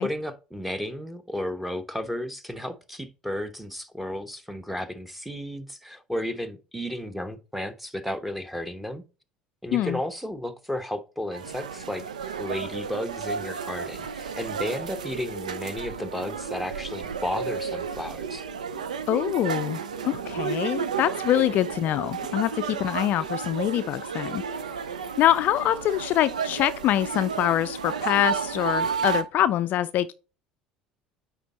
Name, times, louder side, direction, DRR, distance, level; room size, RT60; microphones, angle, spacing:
voice 1, 0.0-9.0 9.6-12.0 12.4-18.4, left 1 dB, 5° right, 1.0 m, -33 dB
sound 1, 11.3-29.2, right 6 dB, 80° right, 0.6 m, -32 dB
voice 2, 19.1-24.4 25.2-30.1, left 12 dB, 50° left, 0.4 m, -25 dB
9.3 x 3.6 x 4.1 m
figure-of-eight pair, 65°, 4 cm